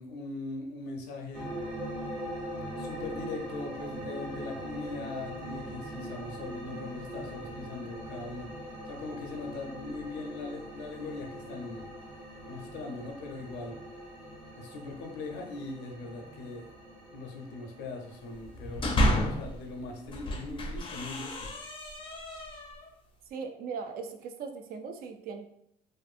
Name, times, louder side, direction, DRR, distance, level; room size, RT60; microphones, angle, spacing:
voice 1, 0.0-1.5 2.7-8.5 8.9-11.9 12.5-13.8 14.5-16.8 17.1-21.5, left 3 dB, 90° left, 3 dB, 0.5 m, -40 dB
sound 1, 1.3-20.5, equal, 40° right, 1.3 m, -42 dB
sound 2, 18.4-19.6 20.1-22.9, equal, 30° left, 0.4 m, -31 dB
voice 2, 23.3-25.4, right 5 dB, 60° right, 6 dB, 0.4 m, -39 dB
2.5 x 2.5 x 2.4 m, 0.74 s
cardioid pair, 110°, 17 cm